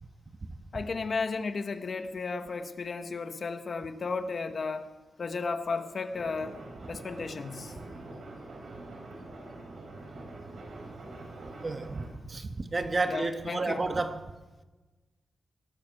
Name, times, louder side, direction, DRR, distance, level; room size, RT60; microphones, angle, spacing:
voice 1, 0.7-4.9 5.2-6.6 6.9-7.7 13.1-13.8, left 4 dB, 50° left, 1.1 m, -34 dB
sound 1, 6.1-12.1, right 2 dB, 70° right, 4.5 m, -45 dB
voice 2, 11.6-14.4, right 3 dB, 35° right, 1.2 m, -31 dB
20.0 x 13.0 x 4.7 m
wide cardioid pair, 115°, 0 cm